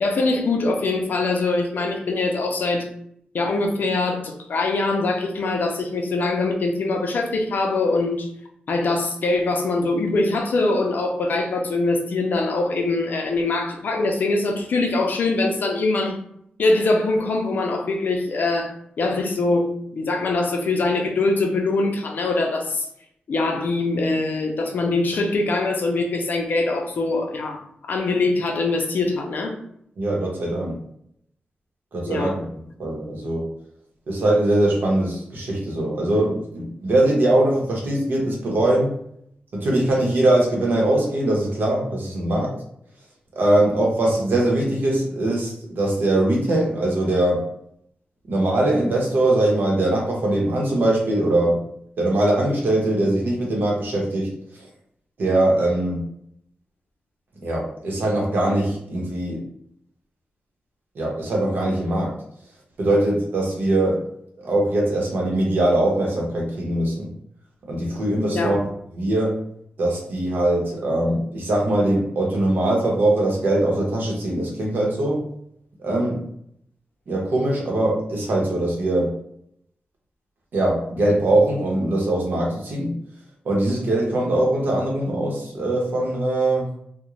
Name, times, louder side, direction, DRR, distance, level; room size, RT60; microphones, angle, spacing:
voice 1, 0.0-2.9 3.3-8.3 8.7-16.2 16.6-22.9 23.3-29.6 32.1-32.3 68.3-68.6, left 3 dB, 65° left, 3 dB, 0.5 m, -23 dB
voice 2, 30.0-30.8 31.9-32.5 32.8-33.4 34.1-38.9 39.5-42.5 43.3-47.4 48.3-51.6 52.0-54.7 55.2-56.0 57.4-59.4 60.9-62.2 62.8-64.0 64.4-67.1 67.7-68.6 68.9-69.4 69.8-75.2 75.8-76.2 77.1-79.1 80.5-83.0 83.4-86.7, right 1 dB, 75° right, -1 dB, 0.8 m, -21 dB
2.4 x 2.1 x 3.0 m, 0.70 s
wide cardioid pair, 120°, 3 cm